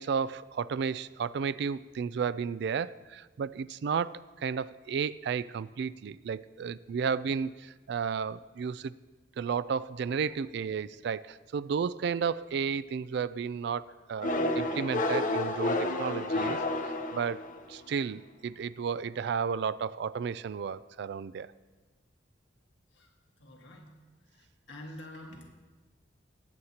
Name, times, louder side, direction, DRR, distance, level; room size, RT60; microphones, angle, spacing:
voice 1, 0.0-8.9 9.4-17.4 17.7-21.5, right 6 dB, 65° right, 17 dB, 0.3 m, -33 dB
sound 1, 14.2-17.7, left 1 dB, 45° left, 0.8 m, -30 dB
voice 2, 23.4-24.0 24.3-25.5, left 1 dB, 85° left, 0 dB, 1.7 m, -47 dB
20.5 x 8.0 x 2.9 m, 1.3 s
head